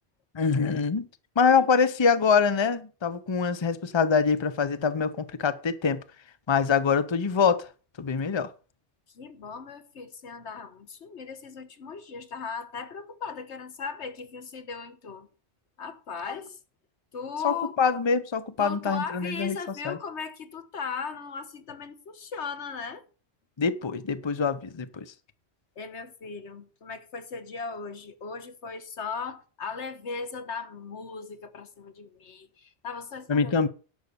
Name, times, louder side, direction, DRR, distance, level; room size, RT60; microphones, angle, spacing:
voice 1, 0.3-1.1 1.4-6.0 6.5-7.7 8.0-8.5 16.3-16.4 17.4-19.6 19.8-20.0 23.6-25.0 33.3-33.7, left 5 dB, 30° left, 0.7 m, -24 dB
voice 2, 9.1-15.3 15.8-16.5 17.1-17.8 18.6-23.0 25.8-33.7, left 5 dB, 85° left, 1.5 m, -37 dB
11.0 x 6.4 x 7.0 m
omnidirectional pair, 1.1 m